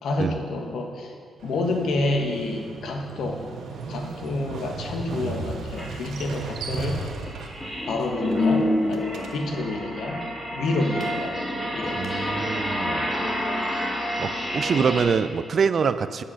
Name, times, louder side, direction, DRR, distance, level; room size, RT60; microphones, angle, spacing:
voice 1, 0.0-1.1 1.4-3.4 3.9-7.1 7.8-10.2 10.5-11.4 11.7-12.0 12.8-13.0, left 2 dB, 75° left, 2 dB, 1.4 m, -28 dB
Motorcycle, 1.4-9.7, right 4 dB, 75° right, 1.2 m, -36 dB
sound 1, 5.8-5.9 6.3-15.0, left 1 dB, 20° left, 2.7 m, -28 dB
sound 2, 11.0-11.2 11.8-12.3, left 1 dB, 40° left, 2.2 m, -41 dB
voice 2, 12.0-13.1 14.2-16.2, right 6 dB, 45° right, 13 dB, 0.4 m, -25 dB
10.0 x 8.5 x 5.6 m, 2.1 s
cardioid pair, 125°, 0 cm